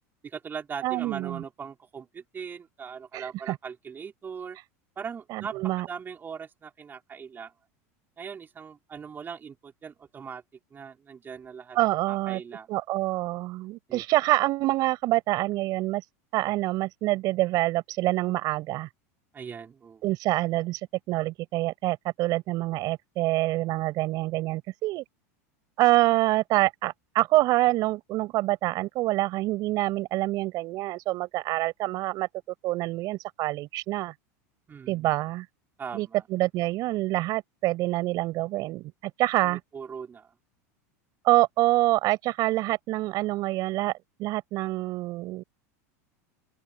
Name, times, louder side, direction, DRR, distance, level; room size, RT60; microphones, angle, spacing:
voice 1, 0.2-4.6 5.0-7.5 8.2-10.4 10.7-11.8 12.1-12.7 13.9-14.0 19.3-20.0 34.7-35.1 35.8-36.2 39.4-40.3, right 6 dB, 25° right, 4.6 m, -40 dB
voice 2, 0.8-1.4 3.1-3.6 5.3-5.9 11.7-12.4 12.7-16.0 16.3-18.9 20.0-20.8 21.1-25.0 25.8-32.3 32.6-34.1 34.9-35.5 35.9-39.6 41.2-43.9 44.2-45.4, right 18 dB, 50° right, 5.5 m, -26 dB
open air
supercardioid pair, 115°, 8 cm